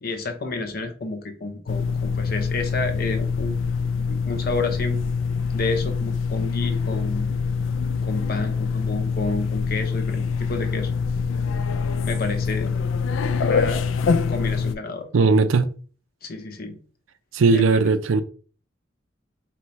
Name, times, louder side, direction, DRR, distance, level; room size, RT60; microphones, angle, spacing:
voice 1, 0.0-3.6 4.0-5.0 5.5-7.3 8.0-10.9 12.0-12.7 13.4-13.8 14.3-15.1 16.2-16.8 17.5-17.8, left 3 dB, 50° left, 0.8 m, -30 dB
sound 1, 1.7-14.7, left 5 dB, 80° left, 0.4 m, -25 dB
voice 2, 15.1-15.7 17.3-18.2, right 4 dB, 85° right, 0.5 m, -18 dB
4.7 x 3.0 x 3.1 m
head